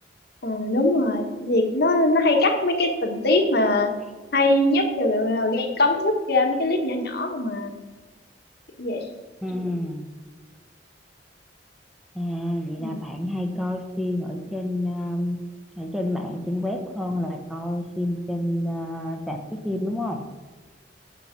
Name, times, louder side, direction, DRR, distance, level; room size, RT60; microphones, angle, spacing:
voice 1, 0.4-3.9 4.3-7.7 8.8-9.1 12.8-13.0, left 2 dB, 60° left, 4 dB, 1.4 m, -22 dB
voice 2, 9.4-10.1 12.1-15.4 15.8-20.2, left 1 dB, ahead, 3 dB, 1.0 m, -29 dB
10.5 x 6.9 x 5.9 m, 1.3 s
head